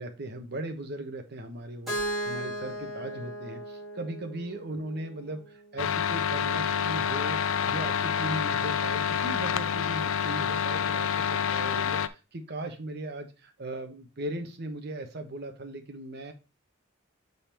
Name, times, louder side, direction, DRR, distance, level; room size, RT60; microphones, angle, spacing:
voice 1, 0.0-7.4 7.6-16.3, right 1 dB, 50° right, 6 dB, 1.1 m, -38 dB
Keyboard (musical), 1.9-5.8, right 1 dB, ahead, 3.0 m, -36 dB
sound 1, 5.8-12.1, left 7 dB, 75° left, 0.5 m, -28 dB
6.9 x 4.1 x 4.4 m, 0.30 s
head